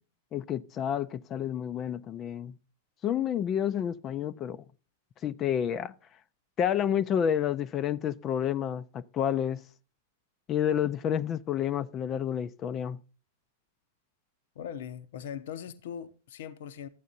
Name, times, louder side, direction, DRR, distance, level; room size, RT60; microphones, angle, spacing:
voice 1, 0.3-2.5 3.0-4.6 5.2-5.9 6.6-9.6 10.5-13.0, left 9 dB, 30° left, 0.5 m, -29 dB
voice 2, 14.6-16.9, left 8 dB, 65° left, 0.8 m, -40 dB
12.5 x 8.3 x 2.6 m
figure-of-eight pair, 100°, 0 cm